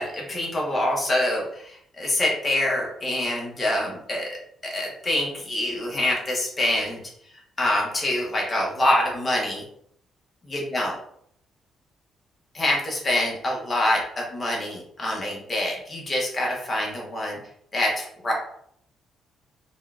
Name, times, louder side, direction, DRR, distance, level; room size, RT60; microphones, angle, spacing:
voice 1, 0.0-4.3 4.6-7.0 7.6-9.6 10.5-11.0 12.5-17.4 17.7-18.3, left 1 dB, 25° left, -2 dB, 0.9 m, -25 dB
3.6 x 2.2 x 2.3 m, 0.70 s
cardioid pair, 90°, 0 cm